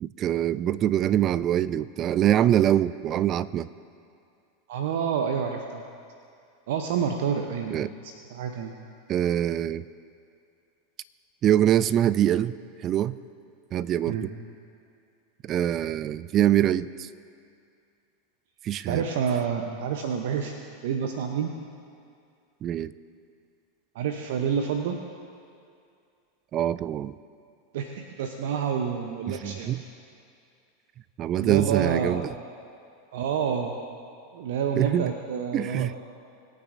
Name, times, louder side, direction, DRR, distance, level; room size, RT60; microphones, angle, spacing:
voice 1, 0.0-3.7 7.7-7.9 9.1-9.8 11.4-12.6 12.8-13.2 13.7-14.3 15.4-17.1 18.6-19.0 22.6-22.9 26.5-27.1 29.3-29.8 31.2-32.3 34.8-35.1 35.5-35.9, right 11 dB, 35° right, 17 dB, 0.3 m, -24 dB
voice 2, 4.7-5.8 6.7-8.7 14.1-14.2 18.9-20.6 20.8-21.5 23.9-25.0 27.7-29.7 31.4-32.2 33.1-33.7 34.3-36.0, right 7 dB, 60° right, 4 dB, 0.7 m, -28 dB
20.0 x 8.9 x 2.6 m, 2.4 s
figure-of-eight pair, 90°, 0 cm